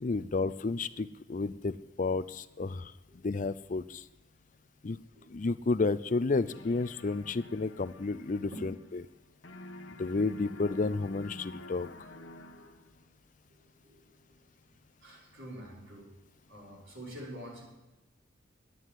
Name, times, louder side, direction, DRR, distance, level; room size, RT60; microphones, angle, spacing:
voice 1, 0.0-4.0 4.8-5.0 5.3-8.7 10.0-11.9, left 3 dB, 40° left, 15 dB, 0.4 m, -31 dB
sound 1, 6.4-9.2 9.4-13.0, left 2 dB, 60° left, 1.4 m, -49 dB
voice 2, 12.2-12.9 13.5-14.4 15.0-16.1 16.5-17.6, right 1 dB, 65° right, -4 dB, 5.5 m, -47 dB
11.5 x 9.3 x 9.8 m, 1.1 s
head